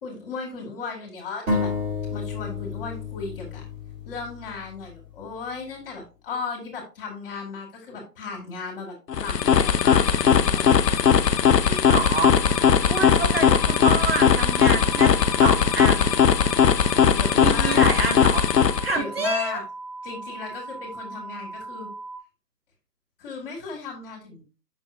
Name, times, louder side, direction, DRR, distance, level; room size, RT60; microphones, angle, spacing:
voice 1, 0.0-1.7 2.1-3.7 4.1-10.7 12.8-13.4 17.1-17.9 19.0-19.6 20.0-21.9 23.2-24.4, left 4 dB, 35° left, 2.2 m, -36 dB
sound 1, 1.5-5.1, left 3 dB, 55° right, 3.1 m, -30 dB
sound 2, 9.1-19.0, left 7 dB, 80° left, 0.7 m, -19 dB
voice 2, 11.7-12.3 12.9-15.1 15.4-16.2 17.4-18.4 18.8-19.6, right 3 dB, 35° right, 0.8 m, -27 dB
sound 3, 12.3-22.2, right 2 dB, 15° right, 1.2 m, -38 dB
7.4 x 6.2 x 2.5 m
figure-of-eight pair, 140°, 49 cm